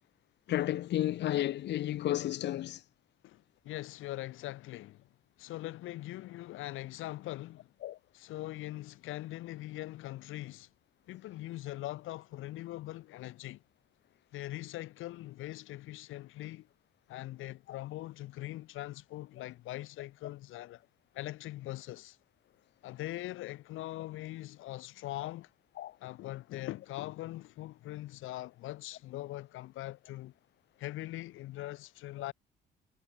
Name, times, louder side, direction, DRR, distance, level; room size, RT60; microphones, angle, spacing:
voice 1, 0.5-2.8 7.8-8.0 25.8-25.9, left 13 dB, 60° left, 0.5 m, -32 dB
voice 2, 3.2-5.1 5.4-7.7 8.1-10.7 11.1-13.6 14.3-16.7 17.1-20.8 21.1-22.2 22.8-25.5 26.0-30.3 30.8-32.3, left 16 dB, 90° left, 2.0 m, -42 dB
cardioid pair, 90°, 20 cm